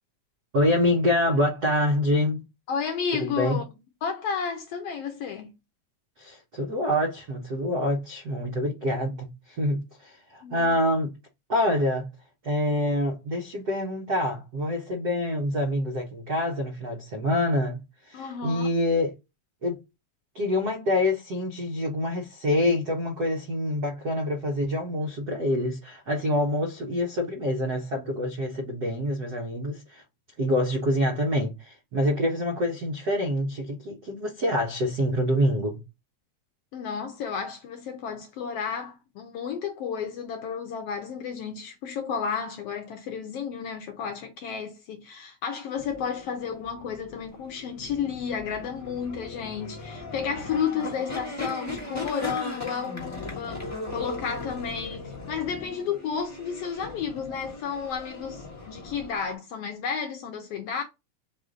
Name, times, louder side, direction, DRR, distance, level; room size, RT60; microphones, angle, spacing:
voice 1, 0.5-2.4 3.1-3.6 6.2-11.1 11.5-12.1 12.4-17.8 18.1-19.1 19.6-19.8 20.3-30.0 30.4-35.8, left 1 dB, 85° right, 0.8 m, -26 dB
voice 2, 2.7-3.6 4.0-5.5 10.4-10.7 18.1-18.7 36.7-60.8, left 6 dB, 75° left, 1.4 m, -32 dB
sound 1, 45.7-59.4, left 3 dB, 20° left, 0.4 m, -38 dB
4.8 x 2.6 x 3.7 m
omnidirectional pair, 3.3 m